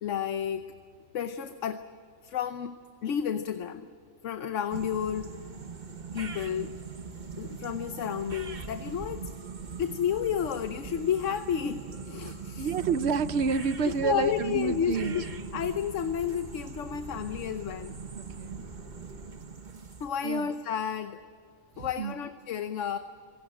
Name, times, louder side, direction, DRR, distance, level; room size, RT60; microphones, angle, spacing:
voice 1, 0.0-0.7 1.1-1.9 2.2-2.8 3.0-3.9 4.2-5.4 6.1-6.7 7.4-9.3 9.8-12.7 13.8-15.2 15.5-18.0 20.0-21.2 21.8-23.0, left 8 dB, 90° left, 9 dB, 1.2 m, -31 dB
sound 1, 4.7-20.1, right 5 dB, 40° right, 1.3 m, -41 dB
voice 2, 12.6-15.2 18.2-18.6 20.2-20.5 21.8-22.1, right 5 dB, 65° right, 14 dB, 1.0 m, -29 dB
Motor vehicle (road) / Engine starting / Idling, 13.5-19.3, equal, 65° left, 3.5 m, -49 dB
26.0 x 17.0 x 8.9 m, 2.1 s
omnidirectional pair, 1.2 m